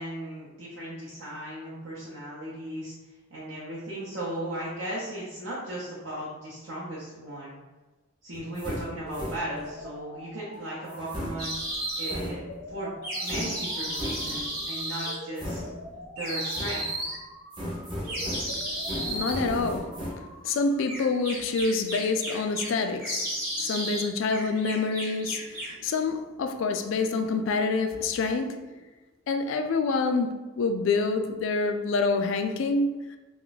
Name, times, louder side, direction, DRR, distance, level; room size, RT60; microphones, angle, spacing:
voice 1, 0.0-2.9 3.3-7.6 8.2-11.5 12.0-12.4 12.7-15.6 16.2-16.9, right 1 dB, 70° right, 0.6 m, -36 dB
sound 1, 8.3-9.8 10.9-12.8 13.2-14.7 15.4-16.2 16.5-17.1 17.5-20.1, equal, 25° right, 0.6 m, -37 dB
sound 2, 9.1-21.1, left 1 dB, 80° left, 0.7 m, -45 dB
sound 3, 11.4-12.1 13.0-15.2 16.2-17.2 18.0-19.4 20.9-22.7 23.0-24.1 24.3-25.8, right 1 dB, 45° right, 1.0 m, -33 dB
voice 2, 18.3-23.3 23.6-28.8 29.3-33.2, left 4 dB, 65° left, 0.3 m, -27 dB
2.4 x 2.2 x 3.8 m
head